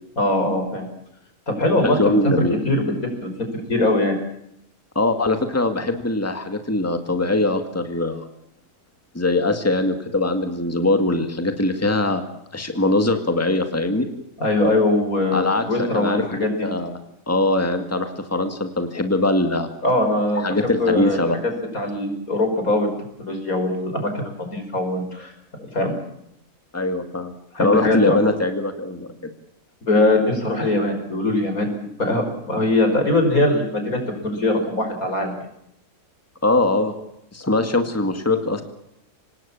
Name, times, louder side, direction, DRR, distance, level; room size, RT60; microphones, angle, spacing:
voice 1, 0.2-0.9 1.5-2.3 2.6-3.3 3.7-4.2 14.4-16.7 19.8-22.9 23.2-25.3 25.6-25.9 27.5-28.2 29.9-31.7 32.0-35.3, left 2 dB, 90° left, 5 dB, 5.6 m, -21 dB
voice 2, 2.0-2.6 5.0-8.3 9.1-12.3 12.5-14.1 15.3-16.9 17.3-19.7 20.4-21.4 26.7-27.3 27.6-29.3 36.4-36.9 37.3-38.6, left 2 dB, 10° left, 7 dB, 2.1 m, -22 dB
25.5 x 19.0 x 7.3 m, 0.78 s
omnidirectional pair, 1.4 m